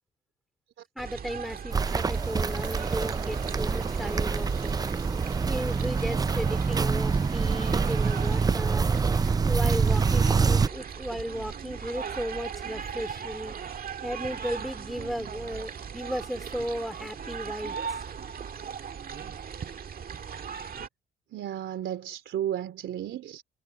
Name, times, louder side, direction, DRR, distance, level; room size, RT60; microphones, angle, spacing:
voice 1, 1.0-4.7 5.4-8.9 9.4-13.6 14.0-18.0, equal, ahead, 2.8 m, -35 dB
sound 1, 1.0-20.9, right 7 dB, 50° right, 1.8 m, -39 dB
Walk footsteps, 1.7-10.7, right 5 dB, 20° right, 0.4 m, -25 dB
voice 2, 21.3-23.4, right 11 dB, 75° right, 3.4 m, -33 dB
cardioid pair, 90°, 20 cm